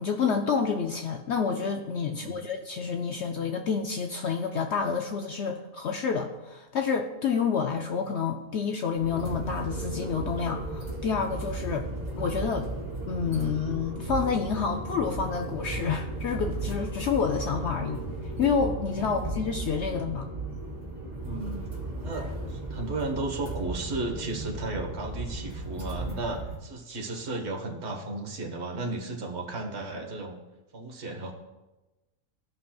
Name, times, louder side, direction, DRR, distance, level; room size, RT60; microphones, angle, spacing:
voice 1, 0.0-11.9 12.2-12.7 13.1-20.3, left 6 dB, 65° left, 4 dB, 0.7 m, -29 dB
voice 2, 2.0-2.4 19.0-19.2 21.2-21.6 22.0-30.4 30.7-31.3, right 2 dB, 55° right, 1 dB, 1.4 m, -34 dB
sound 1, 8.9-26.6, right 2 dB, 30° right, 2.7 m, -35 dB
15.0 x 5.8 x 2.3 m, 1.1 s
omnidirectional pair, 1.4 m